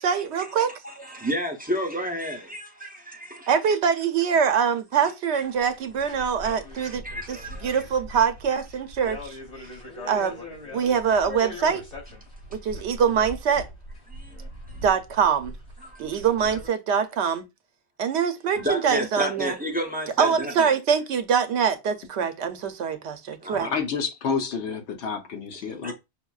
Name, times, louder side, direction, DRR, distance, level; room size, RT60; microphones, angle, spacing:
voice 1, 0.0-0.7 3.5-7.4 7.6-9.4 10.1-10.4 10.7-11.8 12.5-13.7 14.8-15.5 16.0-17.5 18.0-19.5 20.2-23.7, right 7 dB, 80° right, 0.8 m, -24 dB
voice 2, 0.8-3.5 6.0-6.1 6.4-7.8 8.5-8.6 9.6-9.7 10.0-10.1 14.1-14.8 15.8-16.2 18.6-20.7 23.4-23.7 25.6-25.9, equal, 10° right, 0.5 m, -32 dB
sound 1, 5.4-16.7, left 1 dB, 55° left, 2.6 m, -41 dB
voice 3, 23.6-25.9, left 5 dB, 90° left, 1.0 m, -29 dB
5.8 x 2.1 x 2.3 m
omnidirectional pair, 1.1 m